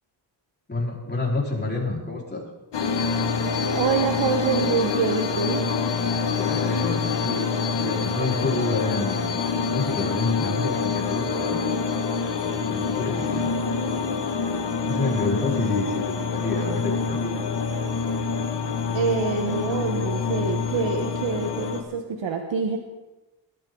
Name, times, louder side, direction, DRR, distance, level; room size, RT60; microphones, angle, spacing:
voice 1, 0.7-2.4 6.3-9.3 9.7-11.7 12.7-13.5 14.8-17.3 18.2-18.3, left 2 dB, 20° left, -3 dB, 4.7 m, -29 dB
sound 1, 2.7-21.8, left 5 dB, 65° left, 2.0 m, -26 dB
voice 2, 3.7-5.6 18.9-22.8, right 5 dB, 75° right, 4 dB, 1.5 m, -25 dB
20.5 x 13.5 x 4.0 m, 1.0 s
wide cardioid pair, 115°, 45 cm